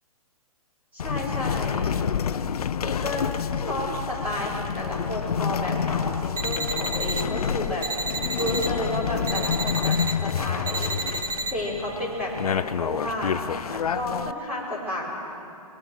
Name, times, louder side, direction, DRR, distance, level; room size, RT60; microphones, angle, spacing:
voice 1, 0.9-1.9 2.8-3.3 3.6-7.8 8.3-10.0 10.2-11.0 11.5-13.3 13.7-15.1, equal, 10° right, -6 dB, 4.7 m, -31 dB
sound 1, 1.0-14.3, left 7 dB, 80° left, 0.7 m, -28 dB
sound 2, 6.4-7.2 7.8-8.7 9.3-10.1 10.7-11.5, right 2 dB, 85° right, 2.4 m, -30 dB
27.5 x 21.0 x 6.4 m, 2.8 s
hypercardioid pair, 165°, 19 cm